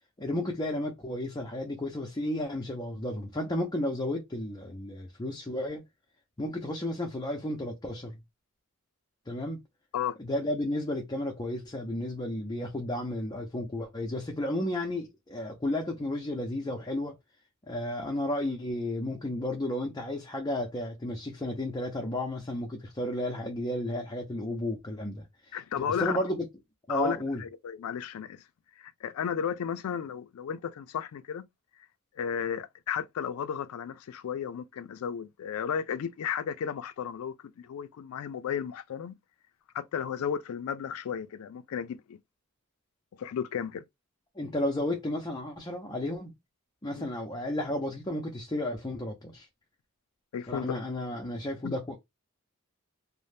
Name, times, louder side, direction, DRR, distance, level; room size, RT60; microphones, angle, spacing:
voice 1, 0.2-5.8 6.4-8.1 9.3-9.6 10.2-17.2 17.7-26.4 26.9-27.4 44.4-46.3 46.8-49.5 50.5-52.0, left 1 dB, 20° left, 0.5 m, -33 dB
voice 2, 25.5-26.2 26.9-28.4 28.8-31.4 32.2-39.1 39.7-42.2 43.2-43.8 47.0-47.1 50.3-50.7 51.6-51.7, left 8 dB, 75° left, 0.3 m, -34 dB
2.6 x 2.0 x 3.2 m
head